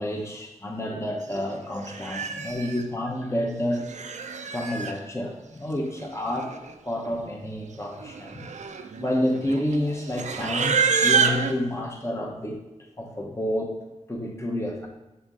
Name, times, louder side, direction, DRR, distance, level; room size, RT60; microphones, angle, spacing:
voice 1, 0.0-3.8 4.5-6.5 6.9-8.5 9.0-12.6 13.0-13.8 14.1-14.9, left 1 dB, 20° left, -1 dB, 0.9 m, -29 dB
Livestock farm animals working animals, 1.3-1.5 1.8-2.8 3.7-5.0 6.0-6.1 6.3-6.7 7.0-7.3 7.9-11.5, right 6 dB, 80° right, 0.4 m, -27 dB
7.2 x 3.5 x 3.7 m, 1.0 s
wide cardioid pair, 55°, 12 cm